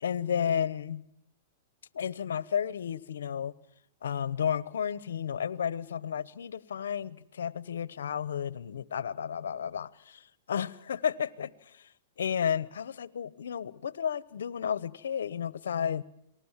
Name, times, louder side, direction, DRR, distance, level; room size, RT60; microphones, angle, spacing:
voice 1, 0.0-1.0 1.9-3.5 4.0-11.8 12.2-16.0, left 8 dB, 85° left, 1.0 m, -32 dB
28.0 x 20.0 x 7.4 m
hypercardioid pair, 135°, 0 cm